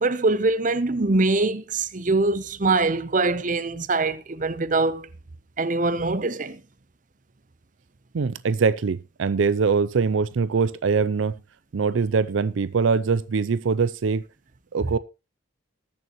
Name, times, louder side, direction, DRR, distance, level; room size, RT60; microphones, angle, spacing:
voice 1, 0.0-5.1 5.6-6.6, right 3 dB, 40° right, 0.8 m, -23 dB
voice 2, 8.1-11.3 11.7-14.2 14.7-15.0, right 5 dB, 75° right, 0.5 m, -23 dB
20.5 x 6.8 x 3.0 m
head